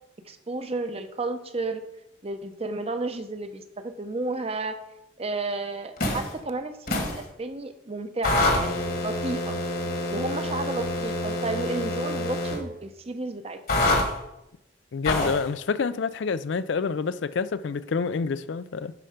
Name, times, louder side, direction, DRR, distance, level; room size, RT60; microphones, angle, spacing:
voice 1, 0.3-1.8 2.2-4.8 5.2-9.6 10.1-13.6, right 2 dB, 30° right, 0.7 m, -32 dB
sound 1, 6.0-6.3 6.9-7.2 8.2-12.6 13.7-14.1 15.0-15.4, left 1 dB, 50° left, 1.5 m, -26 dB
voice 2, 14.9-18.9, left 5 dB, 70° left, 0.4 m, -28 dB
11.0 x 4.4 x 5.1 m
head